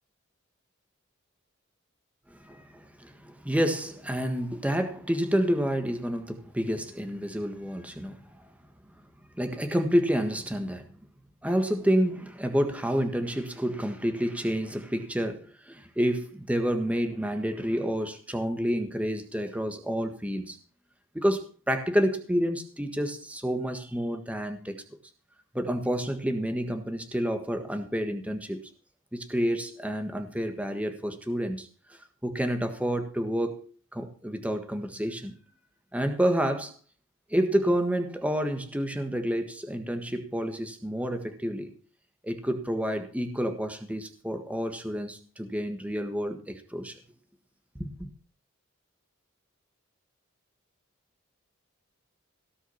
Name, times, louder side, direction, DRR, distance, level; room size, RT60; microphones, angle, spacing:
voice 1, 2.3-8.3 9.4-10.9 11.4-20.6 21.1-24.7 25.5-28.6 29.1-33.6 33.9-35.4 35.9-36.7 37.3-41.7 42.2-47.0 47.8-48.1, equal, 5° right, 1.5 m, -29 dB
17.5 x 6.1 x 7.1 m
head